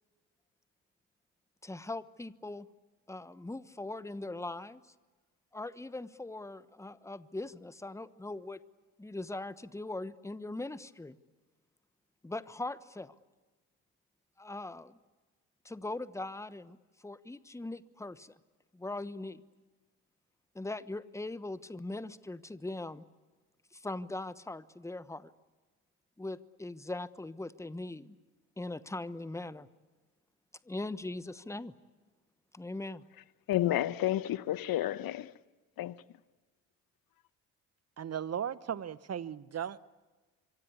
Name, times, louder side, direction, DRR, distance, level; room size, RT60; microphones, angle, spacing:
voice 1, 1.6-2.7 3.1-4.8 5.5-8.6 9.0-11.2 12.2-13.1 14.4-15.0 15.6-16.8 17.0-18.3 18.7-19.4 20.5-23.0 23.7-25.3 26.2-28.2 28.6-29.7 30.6-31.7 32.5-33.0, left 2 dB, 5° left, 1.1 m, -40 dB
voice 2, 33.5-35.3 35.8-35.9, left 13 dB, 50° left, 1.0 m, -30 dB
voice 3, 38.0-39.8, right 9 dB, 35° right, 1.1 m, -36 dB
26.0 x 24.5 x 8.5 m
hypercardioid pair, 50°, 44 cm